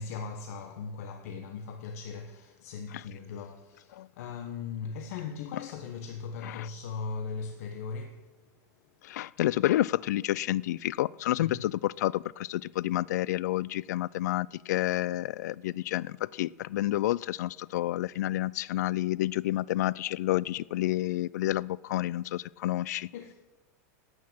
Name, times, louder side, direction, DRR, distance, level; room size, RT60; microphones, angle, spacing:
voice 1, 0.0-8.2 9.2-9.3 11.4-11.7 23.1-23.3, left 5 dB, 65° left, 1.1 m, -39 dB
voice 2, 9.0-23.1, left 15 dB, 85° left, 0.4 m, -29 dB
9.6 x 8.6 x 8.9 m
supercardioid pair, 165°, 9 cm